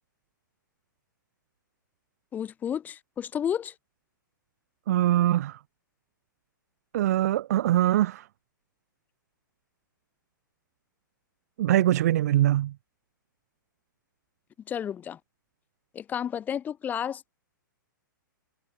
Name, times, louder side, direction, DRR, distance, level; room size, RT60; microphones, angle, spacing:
voice 1, 2.3-3.7 14.7-15.2 15.9-17.3, left 9 dB, 15° left, 0.5 m, -31 dB
voice 2, 4.9-5.6 6.9-8.2 11.6-12.7, right 13 dB, 50° right, 0.4 m, -22 dB
figure-of-eight pair, 110°, 11 cm